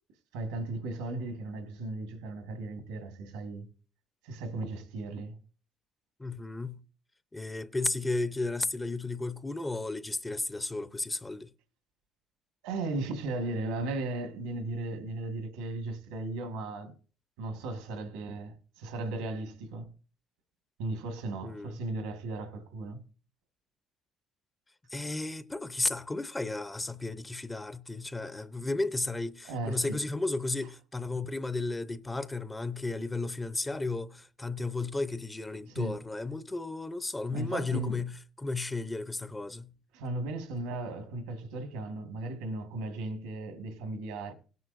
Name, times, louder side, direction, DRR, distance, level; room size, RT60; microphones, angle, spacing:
voice 1, 0.3-3.7 4.2-5.4 12.6-16.9 17.4-19.9 20.8-23.0 29.4-30.0 35.7-36.0 37.3-38.0 39.9-44.3, right 2 dB, 90° right, 1.8 m, -36 dB
voice 2, 6.2-6.8 7.3-11.5 21.4-21.8 24.9-39.7, left 2 dB, 15° left, 0.7 m, -34 dB
17.0 x 9.4 x 2.6 m
supercardioid pair, 70°, 0 cm